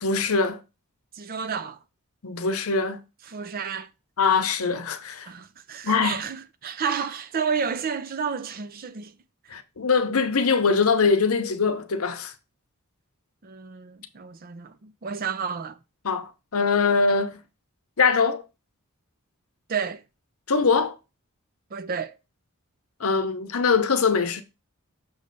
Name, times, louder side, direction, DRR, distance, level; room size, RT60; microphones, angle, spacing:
voice 1, 0.0-0.6 2.2-3.0 4.2-5.3 5.8-6.2 9.5-12.3 16.0-17.4 18.0-18.4 20.5-21.0 23.0-24.4, left 5 dB, 65° left, 0.8 m, -22 dB
voice 2, 1.1-1.8 3.2-3.9 5.3-9.2 13.4-15.8 19.7-20.0 21.7-22.2, right 6 dB, 40° right, 0.5 m, -31 dB
6.3 x 3.2 x 5.2 m
head